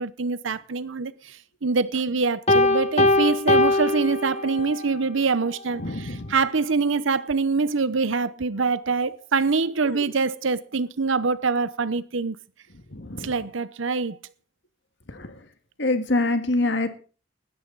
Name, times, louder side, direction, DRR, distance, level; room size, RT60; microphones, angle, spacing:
voice 1, 0.0-1.4 1.6-12.4 13.2-14.2, right 4 dB, 75° right, 0.8 m, -24 dB
Piano, 2.5-4.9, left 2 dB, 30° left, 1.2 m, -21 dB
voice 2, 5.8-6.4 9.8-10.1 12.9-13.4 15.1-15.4 15.8-16.9, left 2 dB, 60° left, 1.9 m, -26 dB
16.5 x 13.0 x 4.0 m
head